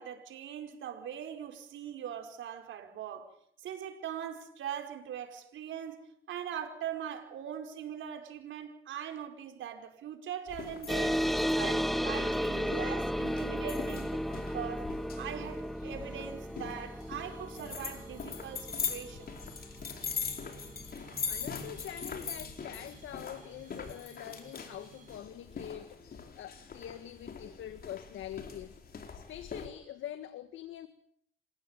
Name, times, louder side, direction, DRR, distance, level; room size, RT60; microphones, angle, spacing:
voice 1, 0.0-3.3 3.6-11.2 11.6-19.4, right 9 dB, 75° right, 5 dB, 5.0 m, -41 dB
sound 1, 10.5-29.7, left 6 dB, 50° left, 4.8 m, -42 dB
sound 2, 10.9-21.8, equal, ahead, 1.0 m, -34 dB
sound 3, 15.9-25.2, right 6 dB, 40° right, 6.5 m, -56 dB
voice 2, 21.3-28.8 29.1-30.9, left 11 dB, 80° left, 9 dB, 1.8 m, -44 dB
28.0 x 16.0 x 9.1 m, 0.70 s
cardioid pair, 90°, 20 cm